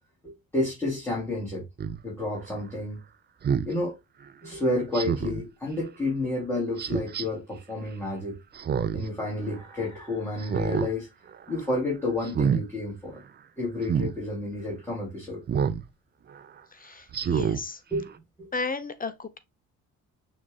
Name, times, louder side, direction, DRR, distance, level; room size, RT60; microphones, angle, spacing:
voice 1, 0.5-1.6 2.0-3.0 3.7-3.9 4.4-8.4 8.9-11.1 11.5-13.2 13.6-15.4 17.9-18.1 18.4-18.5, left 2 dB, 10° left, 2.8 m, -30 dB
Speech synthesizer, 1.8-2.0 3.4-3.7 4.9-5.4 6.8-7.2 8.5-9.1 9.5-9.6 10.4-10.9 11.3-11.6 12.2-12.6 13.8-14.1 15.5-15.8 16.3-16.4 17.1-17.6 18.1-18.2, right 7 dB, 35° right, 0.5 m, -27 dB
voice 2, 16.7-17.8 18.5-19.4, left 4 dB, 30° left, 0.7 m, -34 dB
6.3 x 3.6 x 2.3 m
cardioid pair, 90°, 30 cm